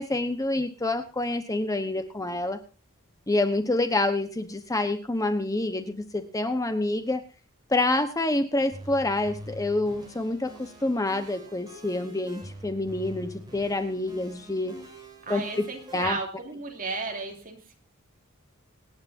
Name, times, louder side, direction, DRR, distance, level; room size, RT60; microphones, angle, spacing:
voice 1, 0.0-2.6 3.3-7.2 7.7-14.8 15.3-15.6 15.9-16.2, left 2 dB, 15° left, 8 dB, 1.0 m, -27 dB
sound 1, 8.7-16.1, equal, 20° right, 4.9 m, -45 dB
voice 2, 15.2-17.7, right 3 dB, 40° right, 1 dB, 3.1 m, -34 dB
25.5 x 9.6 x 2.7 m, 0.32 s
head